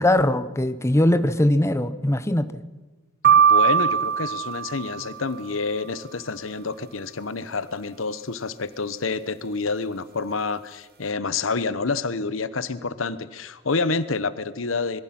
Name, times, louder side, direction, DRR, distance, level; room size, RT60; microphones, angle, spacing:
voice 1, 0.0-2.6, left 1 dB, 15° left, 0.8 m, -21 dB
sound 1, 3.2-5.4, right 7 dB, 50° right, 1.0 m, -20 dB
voice 2, 3.3-15.0, left 4 dB, 80° left, 1.1 m, -28 dB
26.0 x 22.0 x 6.0 m
head